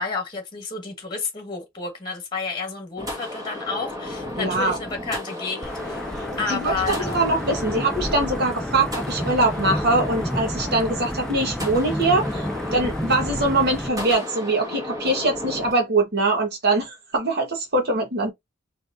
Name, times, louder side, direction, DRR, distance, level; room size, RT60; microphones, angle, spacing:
voice 1, 0.0-6.1 6.4-7.3, left 4 dB, 20° left, 1.7 m, -31 dB
sound 1, 3.0-15.7, left 1 dB, 15° right, 1.6 m, -33 dB
voice 2, 4.4-4.8 6.1-18.3, right 2 dB, 50° right, 1.3 m, -23 dB
Wind / Thunder / Rain, 5.6-13.9, equal, 5° left, 0.3 m, -31 dB
4.4 x 3.5 x 2.6 m
head